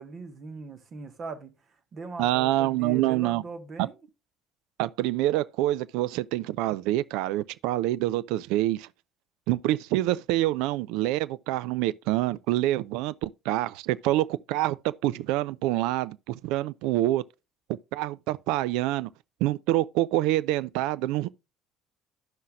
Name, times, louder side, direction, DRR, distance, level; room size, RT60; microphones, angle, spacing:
voice 1, 0.0-1.5 1.9-4.0, right 4 dB, 40° right, 1.5 m, -40 dB
voice 2, 2.2-3.4 3.8-3.9 4.8-8.9 9.5-17.2 17.9-19.1 19.4-21.3, right 15 dB, 60° right, 0.3 m, -26 dB
12.0 x 5.6 x 2.4 m
figure-of-eight pair, 60°, 0 cm